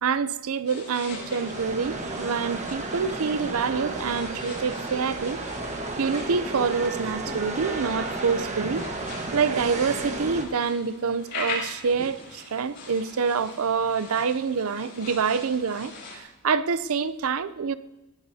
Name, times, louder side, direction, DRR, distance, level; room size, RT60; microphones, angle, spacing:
voice 1, 0.0-5.4 6.0-8.9 9.3-17.7, right 5 dB, 70° right, 0.5 m, -26 dB
sound 1, 0.6-16.2, left 3 dB, 55° left, 6.9 m, -42 dB
sound 2, 1.1-10.4, right 2 dB, 30° right, 1.4 m, -33 dB
19.5 x 19.0 x 2.8 m
head